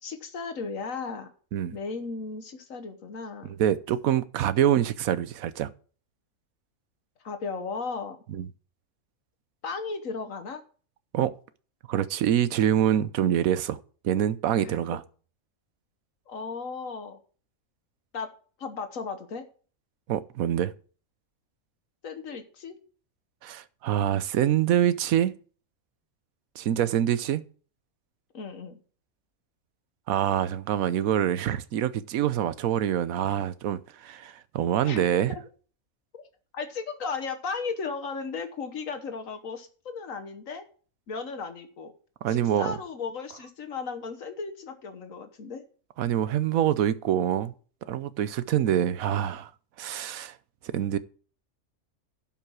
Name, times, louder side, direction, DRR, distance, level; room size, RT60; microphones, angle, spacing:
voice 1, 0.0-1.3 1.7-3.6 7.2-8.2 9.6-10.6 14.6-14.8 16.3-17.2 18.1-18.3 18.6-19.5 22.0-22.7 28.3-28.8 34.8-35.4 36.1-36.2 36.5-40.6 41.1-41.9 42.3-45.6, left 4 dB, 70° left, 1.5 m, -35 dB
voice 2, 3.6-5.7 8.3-8.5 11.1-11.3 11.9-13.8 14.0-15.0 20.1-20.7 23.4-25.3 26.6-27.4 30.1-35.3 42.2-42.7 46.0-47.5 47.9-49.5 49.8-50.3 50.6-51.0, right 10 dB, 85° right, 1.1 m, -25 dB
11.5 x 5.7 x 6.2 m
omnidirectional pair, 1.5 m